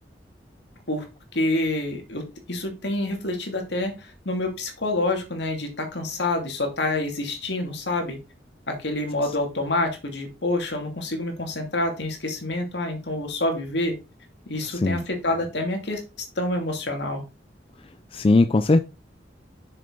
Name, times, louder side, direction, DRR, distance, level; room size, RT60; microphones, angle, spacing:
voice 1, 1.3-8.2 8.7-13.9 14.5-16.0 16.4-17.2, left 2 dB, 70° left, 3 dB, 2.4 m, -27 dB
voice 2, 14.6-15.0 18.1-18.8, left 2 dB, 30° left, 10 dB, 0.4 m, -19 dB
6.9 x 6.7 x 3.8 m, 0.28 s
head